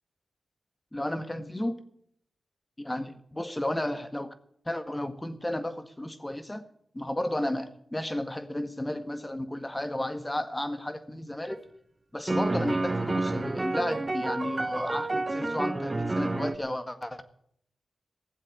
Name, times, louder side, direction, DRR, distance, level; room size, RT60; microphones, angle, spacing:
voice 1, 0.9-1.8 2.8-4.3 4.7-6.6 6.9-11.6 12.1-17.2, left 1 dB, 20° left, 9 dB, 1.7 m, -33 dB
sound 1, 11.5-11.6 12.3-16.6, right 2 dB, 30° right, 1.1 m, -29 dB
16.0 x 7.5 x 9.9 m, 0.68 s
cardioid pair, 45°, 0 cm